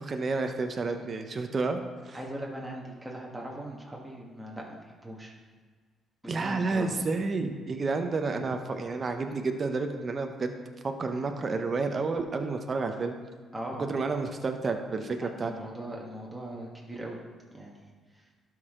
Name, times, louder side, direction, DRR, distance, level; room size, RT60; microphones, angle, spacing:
voice 1, 0.0-2.2 6.3-10.6 10.8-13.1 13.8-15.5, right 3 dB, 45° right, 5 dB, 0.8 m, -30 dB
voice 2, 2.1-5.3 6.2-7.0 13.5-13.9 15.1-17.2 17.5-17.8 18.1-18.3, right 1 dB, 5° right, -3 dB, 1.6 m, -40 dB
12.5 x 4.8 x 3.7 m, 1.5 s
supercardioid pair, 60°, 0 cm